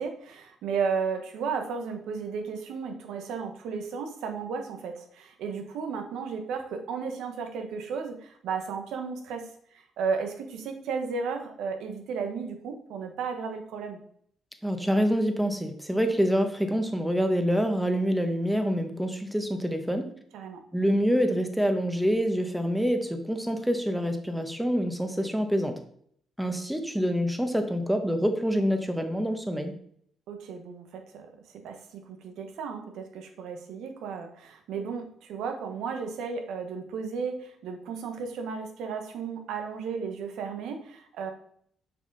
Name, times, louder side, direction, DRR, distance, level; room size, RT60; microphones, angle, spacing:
voice 1, 0.0-14.0 20.3-20.6 30.3-31.3 31.5-41.3, right 5 dB, 85° right, 5 dB, 1.2 m, -34 dB
voice 2, 14.6-20.1 20.7-25.7 26.4-29.7, equal, 5° right, 6 dB, 1.1 m, -26 dB
6.8 x 5.0 x 4.0 m, 0.64 s
cardioid pair, 90°, 0 cm